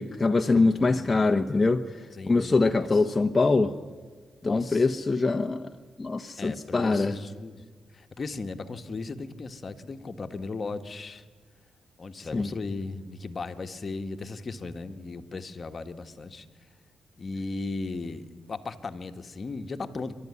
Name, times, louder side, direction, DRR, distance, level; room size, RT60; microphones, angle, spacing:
voice 1, 0.0-1.8 2.3-3.7 4.4-5.7 6.0-7.2 12.2-12.5, left 3 dB, 30° left, 4 dB, 1.1 m, -23 dB
voice 2, 0.5-1.3 2.1-2.9 4.4-4.9 6.4-7.6 7.9-11.2 12.0-16.4 17.2-20.1, left 3 dB, 45° left, 8 dB, 1.5 m, -37 dB
28.5 x 12.5 x 9.7 m, 1.5 s
cardioid pair, 65°, 0 cm